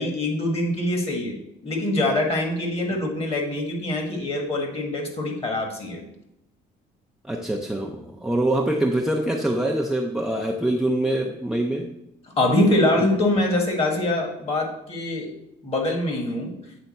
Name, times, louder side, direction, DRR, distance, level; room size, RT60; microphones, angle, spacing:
voice 1, 0.0-1.4 1.6-6.1 12.4-15.3 15.6-16.5, left 1 dB, 35° left, 2 dB, 1.6 m, -24 dB
voice 2, 7.2-11.9 13.0-13.1, right 1 dB, 5° right, 1 dB, 0.5 m, -24 dB
8.2 x 3.4 x 4.3 m, 0.83 s
cardioid pair, 115°, 18 cm